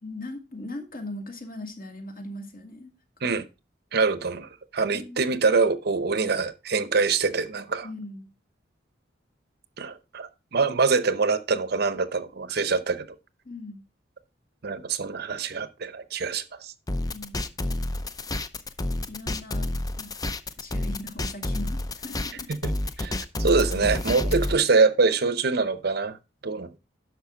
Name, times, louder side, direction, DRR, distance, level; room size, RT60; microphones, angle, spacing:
voice 1, 0.0-2.9 4.8-5.4 7.8-8.3 13.4-13.8 17.1-17.6 19.1-19.7 20.0-20.1 20.6-22.5 22.9-23.1 23.7-24.7, left 1 dB, 50° left, 2.2 m, -40 dB
voice 2, 3.9-7.9 9.8-13.1 14.6-16.7 22.5-22.7 23.0-26.2 26.4-26.8, right 4 dB, 60° right, 0.8 m, -24 dB
sound 1, 16.9-24.5, left 1 dB, 20° left, 0.6 m, -29 dB
10.5 x 6.5 x 3.8 m
head